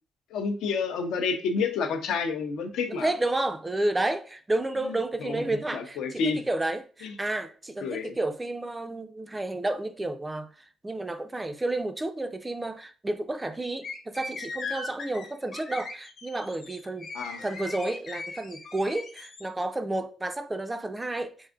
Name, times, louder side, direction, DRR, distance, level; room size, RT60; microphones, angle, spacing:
voice 1, 0.3-3.1 4.8-6.4 7.0-7.1 7.8-8.2 17.1-17.4, left 5 dB, 80° left, 0.6 m, -30 dB
voice 2, 2.9-10.5 10.8-17.1 17.4-21.3, right 2 dB, 15° right, 0.3 m, -31 dB
sound 1, 13.8-19.5, left 3 dB, 65° left, 1.0 m, -39 dB
4.7 x 2.5 x 2.4 m
cardioid pair, 125°, 0 cm